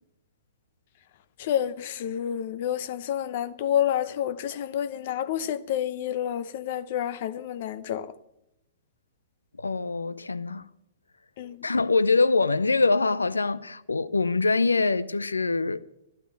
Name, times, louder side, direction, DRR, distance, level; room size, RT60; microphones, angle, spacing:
voice 1, 1.4-8.1 11.4-11.6, left 10 dB, 50° left, 0.9 m, -29 dB
voice 2, 9.6-10.7 11.6-15.8, left 3 dB, 80° left, 0.7 m, -24 dB
14.5 x 12.0 x 7.5 m
figure-of-eight pair, 115°, 0 cm